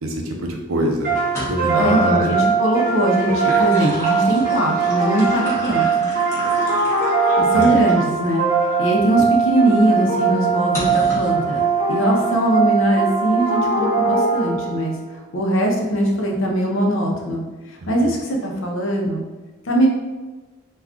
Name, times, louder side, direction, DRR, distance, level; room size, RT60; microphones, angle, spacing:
voice 1, 0.0-1.1 1.5-2.4 7.5-7.7 17.8-18.1, right 1 dB, 80° right, 2 dB, 0.5 m, -24 dB
sound 1, 1.0-14.9, right 5 dB, 40° right, 0.8 m, -20 dB
sound 2, 1.3-1.9 3.1-8.0 8.6-8.7 10.7-11.4, equal, 15° left, 0.7 m, -32 dB
voice 2, 1.7-6.1 7.4-8.5 8.8-11.6 11.9-14.9 15.3-19.2 19.6-19.9, right 1 dB, 60° left, 0 dB, 0.6 m, -21 dB
2.3 x 2.3 x 3.5 m, 1.2 s
head